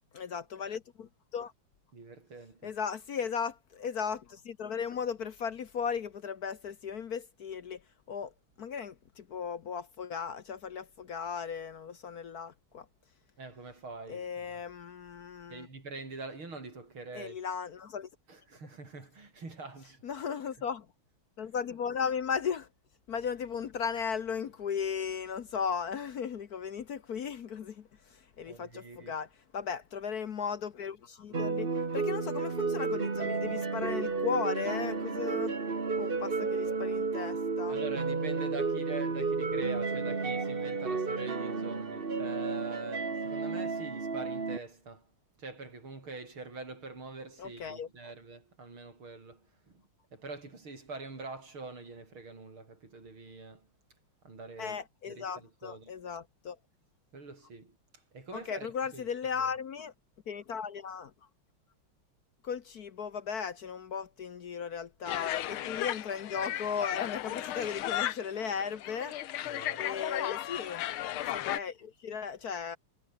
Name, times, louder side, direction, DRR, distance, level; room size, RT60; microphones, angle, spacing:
voice 1, 0.1-1.1 1.3-1.5 2.6-7.8 8.1-8.3 8.6-12.8 14.1-15.7 17.1-18.1 20.0-20.8 21.4-22.7 23.1-27.8 28.4-29.3 29.5-31.7 31.9-35.5 36.0-37.7 47.4-47.9 54.6-56.6 58.3-59.9 60.3-61.1 62.4-69.1 69.8-70.8 71.3-72.8, left 6 dB, 55° left, 1.3 m, -36 dB
voice 2, 1.9-2.8 13.4-14.6 15.5-17.4 18.3-20.3 20.6-20.7 28.5-29.2 31.3-31.5 37.7-45.1 45.4-49.8 50.1-53.7 54.2-55.9 57.1-57.8 58.1-59.1 59.4-59.5 66.4-66.5 69.4-69.9, right 3 dB, 80° right, 6.4 m, -45 dB
sound 1, 31.3-44.6, right 4 dB, 30° right, 1.8 m, -32 dB
sound 2, 65.1-71.6, left 13 dB, 85° left, 1.8 m, -35 dB
omnidirectional pair, 2.3 m